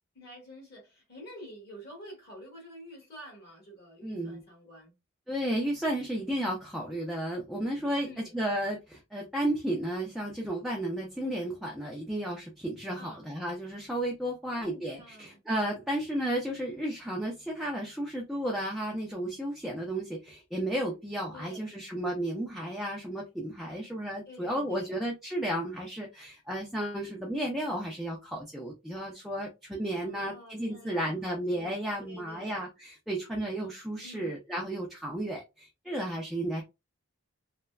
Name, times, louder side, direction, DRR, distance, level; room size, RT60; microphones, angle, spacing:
voice 1, 0.1-4.9 7.9-8.3 12.9-13.2 14.4-15.4 21.3-21.7 24.2-25.0 30.0-32.6 34.0-34.4, equal, 45° left, 1.7 m, -49 dB
voice 2, 4.0-4.4 5.3-8.1 8.3-36.6, right 1 dB, ahead, 0.4 m, -33 dB
3.2 x 2.1 x 2.3 m
head